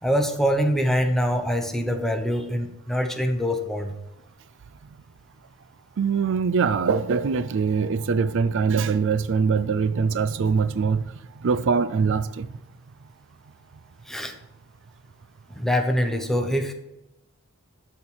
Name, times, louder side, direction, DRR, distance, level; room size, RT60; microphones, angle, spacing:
voice 1, 0.0-3.9 14.1-14.3 15.5-16.7, equal, ahead, 5 dB, 0.9 m, -24 dB
voice 2, 6.0-11.0 11.4-12.5, right 5 dB, 55° right, 13 dB, 0.4 m, -23 dB
12.5 x 4.4 x 5.6 m, 0.93 s
head